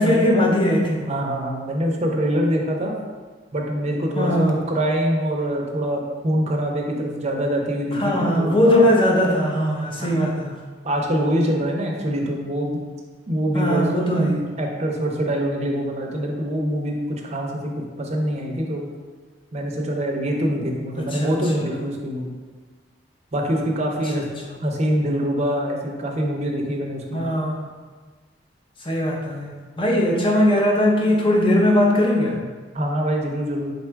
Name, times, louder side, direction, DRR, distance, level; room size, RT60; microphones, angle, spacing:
voice 1, 0.0-1.2 4.2-4.6 7.9-10.6 13.5-14.4 21.0-21.8 24.1-24.6 27.1-27.7 28.8-32.4, left 1 dB, 30° left, -1 dB, 0.6 m, -20 dB
voice 2, 1.1-2.9 3.5-8.9 10.0-10.2 10.8-12.8 13.3-13.9 14.2-17.7 18.0-18.9 19.5-22.3 23.3-24.2 24.6-27.2 32.7-33.7, equal, 40° right, 0 dB, 0.6 m, -24 dB
3.8 x 2.3 x 4.4 m, 1.4 s
head